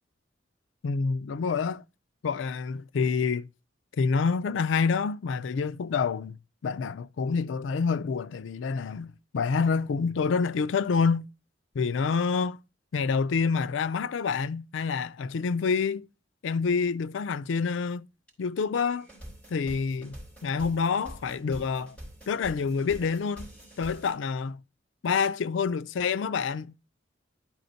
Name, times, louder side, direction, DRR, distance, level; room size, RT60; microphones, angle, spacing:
voice 1, 0.8-1.8 2.2-3.5 3.9-6.4 6.6-11.2 11.7-12.6 12.9-16.1 16.4-18.1 18.4-19.1 19.5-20.2 20.4-22.0 22.3-23.5 23.8-24.6 25.0-26.7, left 5 dB, 90° left, 0.4 m, -27 dB
sound 1, 18.3-18.4 18.7-24.1, equal, 10° left, 3.4 m, -46 dB
12.0 x 4.2 x 4.0 m
head